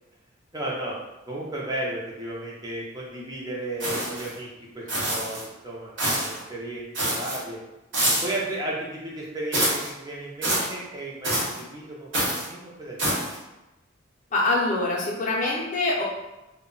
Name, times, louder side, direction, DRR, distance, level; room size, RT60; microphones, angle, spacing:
voice 1, 0.5-0.9 1.3-4.5 4.7-4.8 5.1-7.6 8.2-12.1 12.4-13.2, right 1 dB, 20° right, -4 dB, 0.5 m, -34 dB
sound 1, 3.8-4.3 4.9-5.4 6.0-6.4 6.9-7.4 7.9-8.4 9.5-9.9 10.4-10.7 11.2-11.6 12.1-12.5 13.0-13.4, right 1 dB, 65° right, 0.9 m, -26 dB
voice 2, 14.3-16.0, left 2 dB, 35° left, -3 dB, 0.5 m, -24 dB
2.2 x 2.1 x 3.8 m, 1.0 s
head